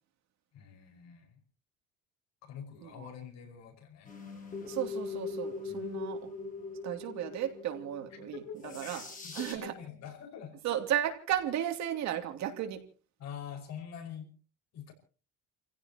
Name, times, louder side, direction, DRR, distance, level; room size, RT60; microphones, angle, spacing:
voice 1, 0.5-1.4 2.4-4.1 5.7-6.0 8.2-10.5 13.2-14.3 14.7-14.9, left 7 dB, 65° left, 4 dB, 5.4 m, -45 dB
sound 1, 4.1-9.5, left 4 dB, 25° left, 7.0 m, -41 dB
voice 2, 4.7-6.2 6.8-9.0 9.3-9.7 10.6-12.8, right 11 dB, 65° right, 5 dB, 3.0 m, -34 dB
30.0 x 16.0 x 2.9 m, 0.37 s
cardioid pair, 155°, 29 cm